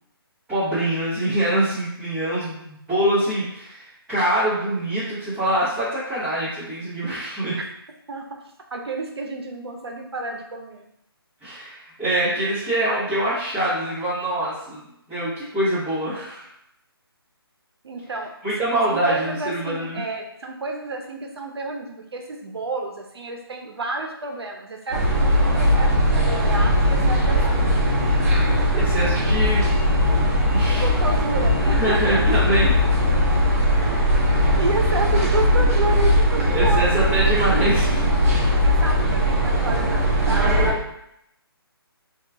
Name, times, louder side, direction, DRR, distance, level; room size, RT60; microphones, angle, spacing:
voice 1, 0.5-7.6 11.4-14.8 15.1-16.5 18.4-20.0 28.4-29.7 30.5-30.9 31.6-32.7 36.5-38.1, right 1 dB, 5° right, -18 dB, 1.0 m, -24 dB
voice 2, 8.1-8.4 8.7-10.8 17.8-18.3 18.9-27.6 30.7-32.5 34.6-36.8 38.6-40.6, right 3 dB, 80° right, 2 dB, 0.7 m, -30 dB
sound 1, 24.9-40.7, equal, 40° right, 0.7 m, -19 dB
3.0 x 2.4 x 3.3 m, 0.79 s
hypercardioid pair, 170°, 13 cm